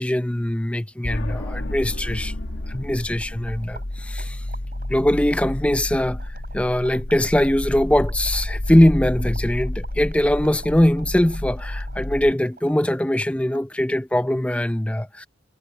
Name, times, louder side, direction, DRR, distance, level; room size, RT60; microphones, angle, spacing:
voice 1, 0.0-2.3 2.7-4.4 4.9-15.3, left 1 dB, 5° left, 0.5 m, -21 dB
sound 1, 1.0-12.3, left 1 dB, 70° left, 1.4 m, -30 dB
sound 2, 2.1-13.8, right 3 dB, 55° right, 4.1 m, -48 dB
head